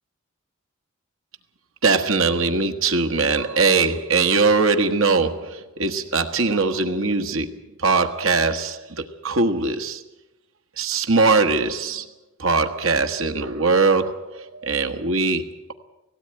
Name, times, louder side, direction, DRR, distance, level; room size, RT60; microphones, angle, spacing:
voice 1, 1.8-10.0 10.8-12.1 12.4-15.7, right 4 dB, 65° right, 6 dB, 1.4 m, -21 dB
18.0 x 16.5 x 8.8 m, 0.99 s
head